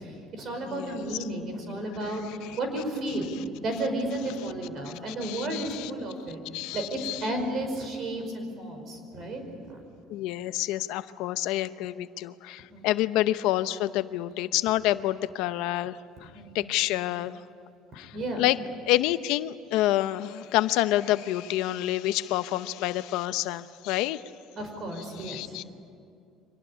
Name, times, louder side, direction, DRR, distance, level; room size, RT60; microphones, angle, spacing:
voice 1, 0.0-3.3 3.6-6.4 6.7-9.4 9.7-9.8 12.7-12.9 16.3-16.8 18.1-18.5 24.6-25.6, right 1 dB, 40° right, 5 dB, 5.2 m, -33 dB
voice 2, 0.7-1.0 4.9-5.0 5.2-5.9 6.5-7.2 10.1-16.3 16.5-17.4 17.9-18.6 18.9-24.2 25.2-25.6, left 15 dB, 70° left, 13 dB, 0.7 m, -28 dB
25.5 x 19.0 x 10.0 m, 2.4 s
cardioid pair, 160°, 0 cm